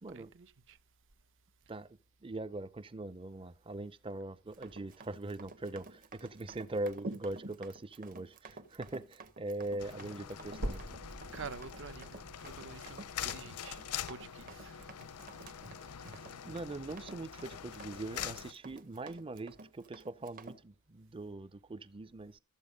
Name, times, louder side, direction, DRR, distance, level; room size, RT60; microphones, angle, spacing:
voice 1, 0.1-0.8 11.3-14.9, right 5 dB, 55° right, 0.8 m, -48 dB
voice 2, 2.2-10.8 15.8-22.4, right 2 dB, 25° right, 0.6 m, -42 dB
Run, 4.5-20.6, right 2 dB, 40° right, 1.1 m, -51 dB
sound 1, 9.8-18.5, left 9 dB, 90° left, 0.6 m, -44 dB
sound 2, 10.6-14.6 15.2-15.3 15.8-15.9 16.3-16.4 17.2-17.3, right 1 dB, 80° right, 1.7 m, -45 dB
14.0 x 8.1 x 5.1 m
head